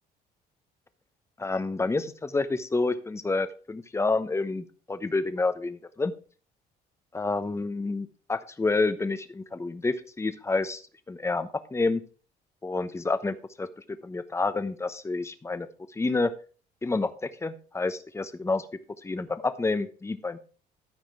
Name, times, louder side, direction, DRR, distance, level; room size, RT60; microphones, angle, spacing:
voice 1, 1.4-6.1 7.1-10.8 11.1-12.0 12.6-13.7 14.0-15.7 15.9-16.3 16.8-18.7 19.0-20.4, left 3 dB, 15° left, 11 dB, 0.9 m, -29 dB
13.0 x 4.9 x 4.8 m, 0.39 s
cardioid pair, 110°, 17 cm